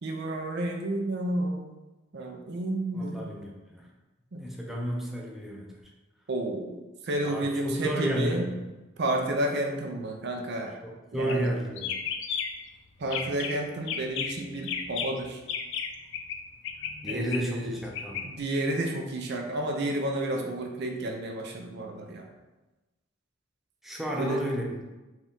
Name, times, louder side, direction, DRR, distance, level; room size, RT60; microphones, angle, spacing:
voice 1, 0.0-1.7 2.1-3.4 4.3-4.4 6.3-8.5 9.0-10.8 11.1-11.5 13.0-15.4 17.1-17.8 18.2-22.3 24.2-24.4, right 1 dB, 55° right, 2 dB, 0.5 m, -31 dB
voice 2, 2.9-3.9 4.4-5.7 7.2-8.6 10.8-12.0 17.0-18.3 23.8-24.8, equal, ahead, -2 dB, 0.5 m, -32 dB
sound 1, 11.2-11.5 11.8-12.7 13.0-13.6 13.9-16.4 16.6-18.2, left 7 dB, 60° left, 0.4 m, -33 dB
4.3 x 2.4 x 3.6 m, 1.1 s
head